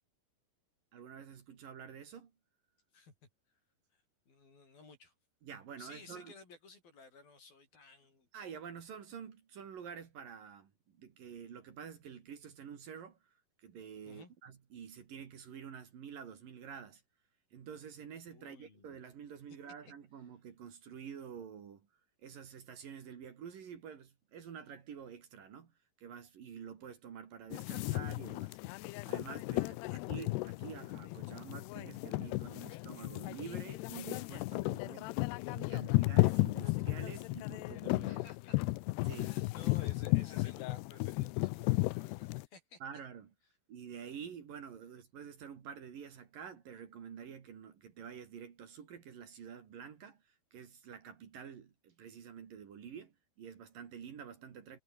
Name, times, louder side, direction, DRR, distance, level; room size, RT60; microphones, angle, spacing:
voice 1, 0.9-2.3 5.4-6.3 8.3-10.7 11.0-13.2 13.6-17.0 17.5-21.9 22.2-25.7 26.0-28.6 29.0-35.1 35.5-38.2 39.0-39.4 42.8-43.3 43.7-54.8, right 7 dB, 60° right, 3.9 m, -48 dB
voice 2, 3.9-5.1 5.8-8.3 14.1-14.3 18.3-19.0 29.5-30.1 38.1-38.6 39.1-42.8, left 4 dB, 60° left, 9.7 m, -56 dB
sound 1, 27.5-42.5, left 22 dB, 80° left, 2.6 m, -34 dB
omnidirectional pair, 4.8 m